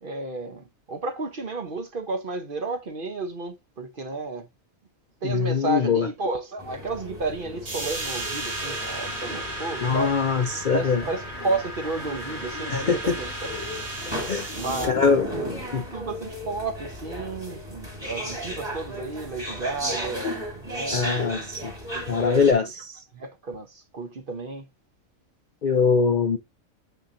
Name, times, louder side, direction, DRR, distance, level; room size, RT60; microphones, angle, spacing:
voice 1, 0.0-4.5 5.2-10.1 10.7-13.5 14.5-15.5 15.7-21.5 21.9-22.7 23.1-24.7, right 3 dB, 45° right, 0.9 m, -32 dB
voice 2, 5.2-6.1 9.8-11.0 12.7-13.0 14.3-14.5 14.9-15.3 15.7-15.8 20.9-21.7 22.1-22.6 25.6-26.4, left 5 dB, 55° left, 0.5 m, -22 dB
sound 1, 6.6-22.5, equal, 20° right, 2.5 m, -35 dB
sound 2, 7.7-14.9, right 1 dB, 85° right, 3.5 m, -35 dB
7.1 x 5.7 x 2.6 m
omnidirectional pair, 1.4 m